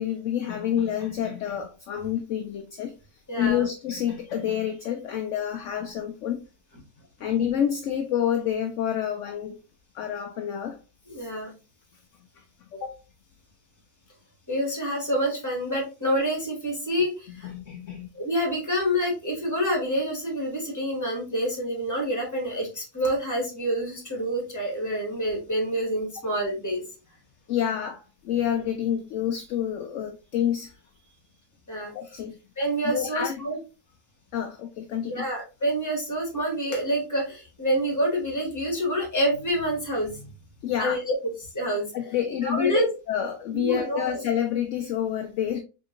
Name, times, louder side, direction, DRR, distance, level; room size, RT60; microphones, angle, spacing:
voice 1, 0.0-2.9 3.4-6.5 7.2-9.6 9.9-10.8 12.4-12.5 12.7-13.0 17.4-18.1 27.5-31.1 31.9-32.4 32.8-33.4 34.3-35.2 40.6-41.0 41.9-45.6, left 9 dB, 70° left, 0.8 m, -28 dB
voice 2, 3.3-3.6 11.1-11.5 14.5-17.5 18.1-26.8 31.7-31.9 32.6-33.6 35.1-40.3 40.8-41.1 41.4-41.9 42.4-42.9 43.5-44.2, equal, 10° left, 1.4 m, -27 dB
3.8 x 3.6 x 2.5 m
omnidirectional pair, 1.6 m